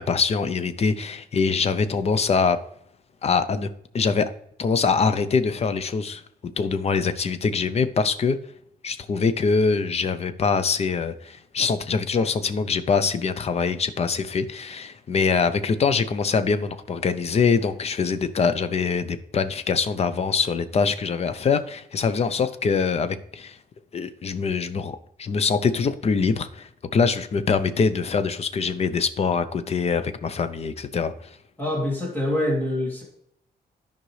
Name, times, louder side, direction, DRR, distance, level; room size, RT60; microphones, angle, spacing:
voice 1, 0.0-2.6 3.2-3.7 3.9-4.3 4.6-6.2 6.6-8.4 8.8-23.6 23.9-24.9 25.2-31.4, left 5 dB, 40° left, 0.6 m, -23 dB
voice 2, 31.6-33.0, left 1 dB, 10° left, 2.2 m, -25 dB
13.0 x 5.2 x 3.2 m
wide cardioid pair, 165°, 16 cm